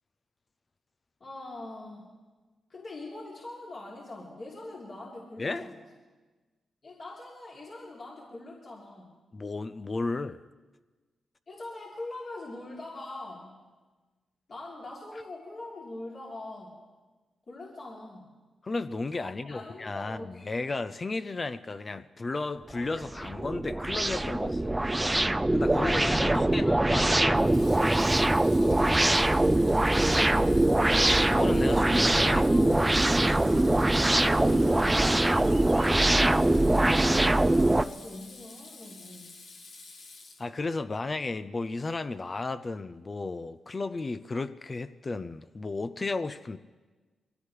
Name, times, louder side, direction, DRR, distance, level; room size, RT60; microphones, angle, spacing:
voice 1, 1.2-2.1 2.7-5.8 6.8-9.1 11.5-13.5 14.5-16.8 17.5-18.4 19.1-20.7 25.6-27.0 28.5-30.5 30.9-31.9 32.2-32.7 34.4-39.4, left 2 dB, 55° left, 3.1 m, -42 dB
voice 2, 5.4-5.7 9.3-10.4 18.6-25.0 25.5-27.8 31.3-33.4 34.3-34.6 40.4-46.6, left 3 dB, 40° left, 0.5 m, -34 dB
sound 1, 22.7-37.8, right 1 dB, 15° right, 0.4 m, -23 dB
Water tap faucet / Sink (filling or washing), 27.3-40.8, left 3 dB, 80° left, 1.8 m, -49 dB
sound 2, 32.7-37.9, right 4 dB, 50° right, 1.0 m, -42 dB
23.5 x 16.5 x 3.3 m
supercardioid pair, 50°, 0 cm